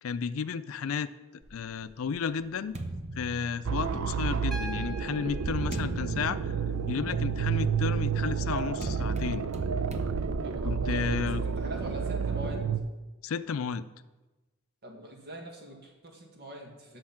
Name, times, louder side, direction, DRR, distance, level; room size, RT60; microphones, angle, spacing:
voice 1, 0.0-1.1 1.5-2.7 3.1-6.5 6.9-9.5 10.6-11.4 13.2-13.8, left 6 dB, 70° left, 13 dB, 0.4 m, -32 dB
sound 1, 1.4-4.2 5.0-12.0, right 2 dB, 35° right, 0.8 m, -41 dB
sound 2, 3.6-12.8, right 6 dB, 80° right, 0.5 m, -30 dB
Piano, 4.5-8.5 10.1-10.2, right 1 dB, ahead, 0.8 m, -46 dB
voice 2, 10.4-11.0 11.4-12.7 14.8-17.0, right 1 dB, 50° right, 1 dB, 1.7 m, -43 dB
8.6 x 6.3 x 5.8 m, 1.1 s
head